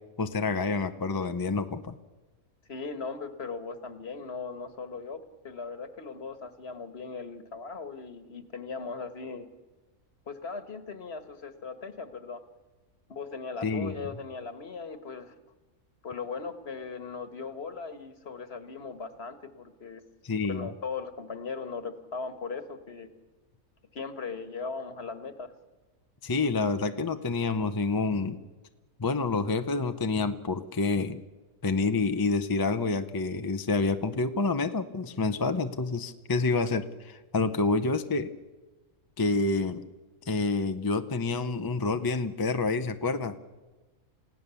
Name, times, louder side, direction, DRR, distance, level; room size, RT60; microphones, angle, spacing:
voice 1, 0.2-1.9 13.6-13.9 20.2-20.7 26.2-28.4 29.0-31.2 31.6-38.3 39.2-39.8 40.3-43.4, left 3 dB, 25° left, 9 dB, 0.5 m, -28 dB
voice 2, 2.7-9.5 10.3-12.4 13.1-15.3 16.0-20.0 20.5-23.1 23.9-25.5, left 4 dB, 45° left, 10 dB, 1.6 m, -38 dB
29.0 x 16.5 x 6.9 m, 1.2 s
omnidirectional pair, 1.5 m